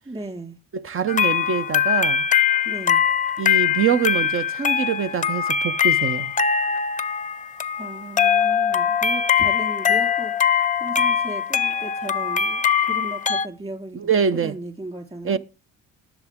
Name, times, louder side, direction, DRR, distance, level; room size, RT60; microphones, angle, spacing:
voice 1, 0.1-0.6 2.6-3.0 7.8-10.3 10.8-15.4, right 2 dB, 20° right, 4.0 m, -36 dB
voice 2, 0.7-2.3 3.4-6.3 13.9-14.5 15.2-15.4, right 7 dB, 45° right, 0.8 m, -24 dB
sound 1, 1.1-13.5, left 7 dB, 25° left, 0.6 m, -22 dB
19.0 x 7.1 x 3.6 m
cardioid pair, 90°, 30 cm